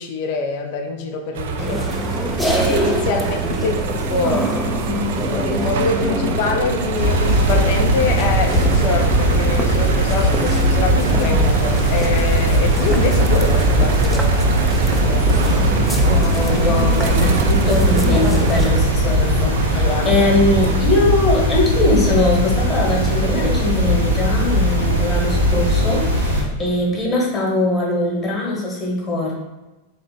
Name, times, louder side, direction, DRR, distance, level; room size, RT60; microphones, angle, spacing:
voice 1, 0.0-4.5 5.3-14.5 19.7-20.3, left 4 dB, 45° left, 4 dB, 0.6 m, -25 dB
sound 1, 1.3-20.8, right 7 dB, 55° right, 0.3 m, -24 dB
sound 2, 1.6-18.7, equal, ahead, 0.5 m, -26 dB
voice 2, 3.0-3.7 4.8-5.1 10.8-11.5 16.1-29.4, left 2 dB, 20° left, -4 dB, 1.2 m, -21 dB
sound 3, 7.0-26.4, equal, 75° right, 1.0 m, -19 dB
3.4 x 2.8 x 4.2 m, 1.1 s
figure-of-eight pair, 90°, 0 cm